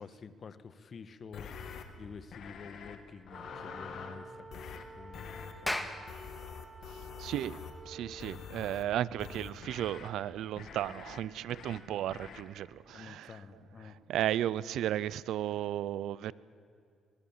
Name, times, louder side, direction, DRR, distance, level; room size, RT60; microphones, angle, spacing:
voice 1, 0.0-6.0 12.9-14.0, left 5 dB, 45° left, 1.4 m, -49 dB
sound 1, 1.3-1.8 2.3-3.0 3.3-4.2 4.5-4.8 5.1-5.5 6.1-7.8 8.2-8.8 9.2-10.1 10.6-11.2 11.5-11.8 12.1-12.4, left 6 dB, 70° left, 2.4 m, -45 dB
sound 2, 3.3-8.2, right 3 dB, 30° right, 1.4 m, -51 dB
Clapping, 5.7-10.3, left 1 dB, 5° left, 1.9 m, -41 dB
voice 2, 7.2-13.4 13.8-16.3, right 12 dB, 80° right, 0.6 m, -34 dB
23.5 x 21.5 x 7.5 m
cardioid pair, 90°, 0 cm